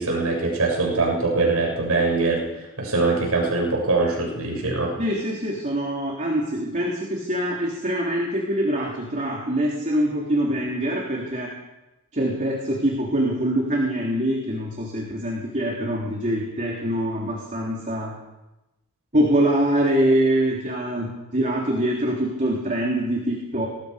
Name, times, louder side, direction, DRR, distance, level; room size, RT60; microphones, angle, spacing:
voice 1, 0.0-4.9, right 3 dB, 75° right, 0 dB, 7.5 m, -23 dB
voice 2, 5.0-11.5 12.1-18.1 19.1-23.7, right 1 dB, 35° right, -2 dB, 3.7 m, -24 dB
26.0 x 20.5 x 5.3 m, 0.99 s
head